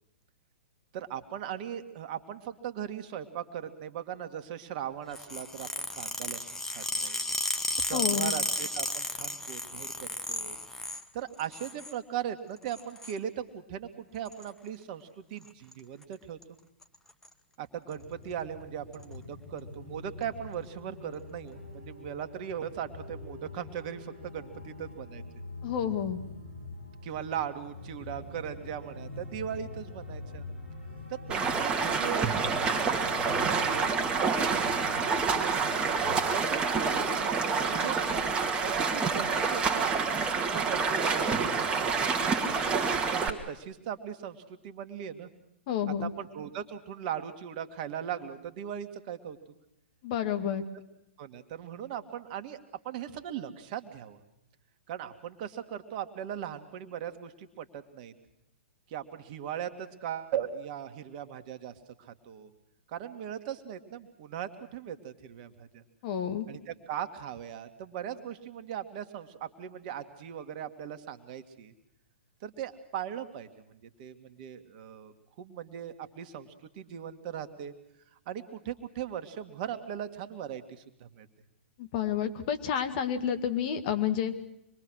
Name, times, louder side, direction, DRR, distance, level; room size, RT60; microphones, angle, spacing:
voice 1, 0.9-7.2 7.8-10.6 11.1-16.4 17.6-25.2 27.0-30.5 31.1-32.3 32.6-35.9 36.3-42.1 42.6-45.3 46.0-49.4 51.2-52.6 52.8-54.2 54.9-58.1 58.9-62.5 62.9-65.8 66.5-71.7 72.4-77.7 78.3-81.3, right 9 dB, 45° right, 8 dB, 2.0 m, -39 dB
sound 1, 5.1-11.0 11.4-11.9 12.7-13.2 14.3-14.5 15.4-15.7 16.0-16.1 16.4-16.5 16.8-17.3 17.9-18.0 18.9-19.0, left 2 dB, 5° left, 1.3 m, -33 dB
voice 2, 7.9-8.3 25.6-26.2 45.7-46.1 50.0-50.6 66.0-66.5 81.8-84.3, left 9 dB, 45° left, 8 dB, 2.2 m, -30 dB
sound 2, 17.9-36.2, left 2 dB, 85° left, 7.7 m, -45 dB
Stream, 31.3-43.3, right 5 dB, 15° right, 2.3 m, -28 dB
25.5 x 22.0 x 6.5 m, 0.81 s
figure-of-eight pair, 115°, 6 cm